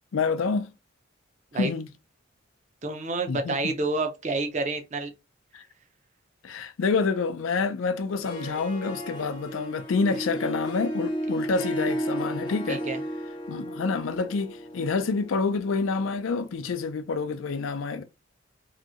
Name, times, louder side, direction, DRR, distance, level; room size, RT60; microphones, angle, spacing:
voice 1, 0.1-0.7 1.5-1.9 3.3-3.7 5.5-5.6 6.4-12.8 13.5-18.0, left 4 dB, 80° left, 0.4 m, -28 dB
voice 2, 2.8-5.1 12.7-13.0, right 3 dB, 35° right, 0.5 m, -29 dB
Harp, 8.1-16.7, equal, 20° left, 0.5 m, -34 dB
2.9 x 2.6 x 2.4 m
head